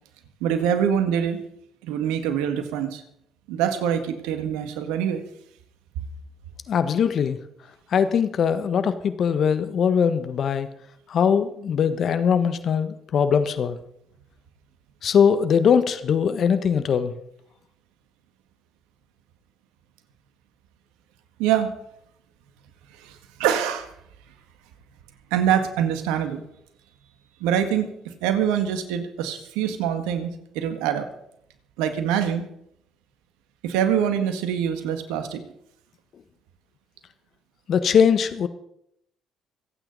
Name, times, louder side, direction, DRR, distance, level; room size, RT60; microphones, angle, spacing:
voice 1, 0.4-1.4 1.8-3.0 3.5-5.3 21.4-21.7 23.0-23.9 25.3-26.4 27.4-31.1 31.8-32.4 33.6-35.4, right 9 dB, 80° right, 8 dB, 1.7 m, -24 dB
voice 2, 6.7-7.4 7.9-10.7 11.1-13.8 15.0-17.1 37.7-38.5, left 7 dB, 55° left, 11 dB, 1.4 m, -21 dB
26.5 x 9.0 x 4.1 m, 0.75 s
hypercardioid pair, 60°, 0 cm